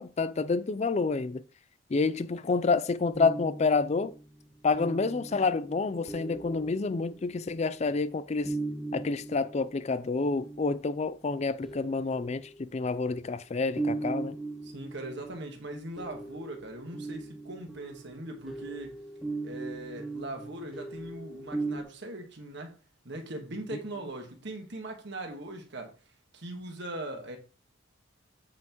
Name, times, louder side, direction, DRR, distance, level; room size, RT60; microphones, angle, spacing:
voice 1, 0.0-1.4 1.9-4.1 4.6-8.5 8.9-14.4, left 4 dB, 35° left, 0.4 m, -28 dB
sound 1, 3.1-7.7 8.4-11.1 11.6-13.1 13.8-21.8, right 3 dB, ahead, 0.7 m, -39 dB
voice 2, 14.6-18.9 19.4-22.7 23.0-25.9 26.3-27.4, right 2 dB, 60° right, 1.5 m, -40 dB
7.6 x 5.7 x 3.0 m
head